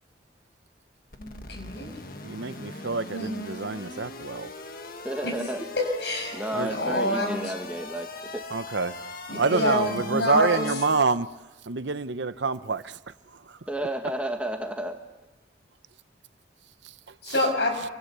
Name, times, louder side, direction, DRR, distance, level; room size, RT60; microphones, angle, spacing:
sound 1, 1.1-11.0, left 3 dB, 50° left, 1.7 m, -40 dB
voice 1, 1.2-1.9 3.1-3.3 5.2-5.3 5.8-7.5 9.3-10.7 17.2-17.7, left 1 dB, 70° left, 4 dB, 6.6 m, -27 dB
voice 2, 2.2-4.5 6.5-6.9 8.5-9.0 9.3-11.3 11.7-13.0 13.5-13.6, right 4 dB, 75° right, 13 dB, 0.8 m, -27 dB
voice 3, 5.0-5.6 6.3-8.1 8.3-8.4 9.5-9.6 13.7-15.0, right 1 dB, 5° right, 4 dB, 1.6 m, -31 dB
28.0 x 25.0 x 6.8 m, 1.1 s
head